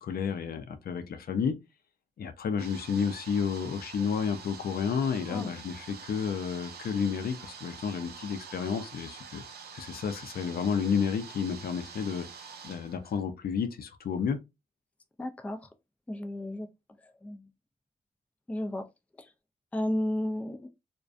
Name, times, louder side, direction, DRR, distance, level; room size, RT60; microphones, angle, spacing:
voice 1, 0.0-1.6 2.2-9.4 9.7-12.3 12.6-14.4, left 6 dB, 70° left, 0.4 m, -31 dB
sound 1, 2.6-13.2, right 6 dB, 90° right, 0.5 m, -46 dB
voice 2, 15.2-15.6 16.1-16.7 17.2-17.4 18.5-18.8 19.7-20.7, left 1 dB, 10° left, 0.3 m, -32 dB
2.5 x 2.1 x 2.3 m
wide cardioid pair, 105°, 16 cm